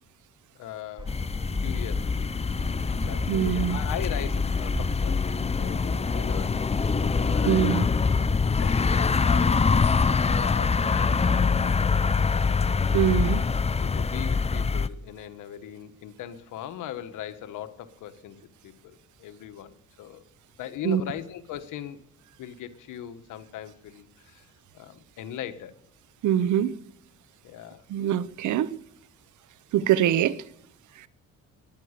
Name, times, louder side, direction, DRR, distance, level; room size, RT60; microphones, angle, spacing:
voice 1, 0.5-1.2 1.6-2.3 2.9-7.9 8.6-9.7 10.2-11.6 12.3-12.8 13.8-20.2 20.6-22.0 22.4-24.5 24.7-25.7 27.4-27.8, left 10 dB, 85° left, 1.4 m, -39 dB
sound 1, 1.0-7.3, right 1 dB, 15° right, 3.2 m, -41 dB
sound 2, 1.1-14.9, left 5 dB, 20° left, 0.7 m, -24 dB
voice 2, 3.3-3.8 7.4-7.9 12.9-13.4 20.8-21.0 26.2-26.8 27.9-28.8 29.7-30.4, right 10 dB, 75° right, 0.9 m, -23 dB
21.0 x 9.9 x 6.7 m
cardioid pair, 90°, 30 cm